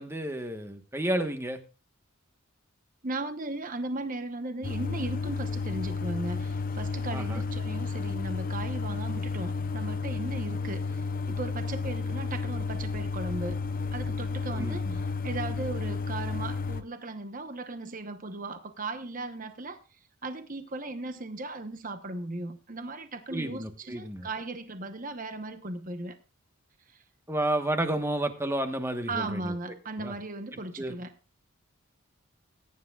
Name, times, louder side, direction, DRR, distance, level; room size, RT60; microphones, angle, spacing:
voice 1, 0.0-1.6 7.1-7.4 14.5-15.0 23.3-24.3 27.3-29.5 30.0-30.1 30.8-30.9, right 1 dB, 10° right, 1.2 m, -31 dB
voice 2, 3.0-13.6 13.9-26.2 26.9-27.0 29.1-31.1, right 2 dB, 40° right, 1.0 m, -37 dB
sound 1, 4.6-16.8, left 4 dB, 40° left, 0.7 m, -32 dB
20.5 x 10.0 x 2.4 m
head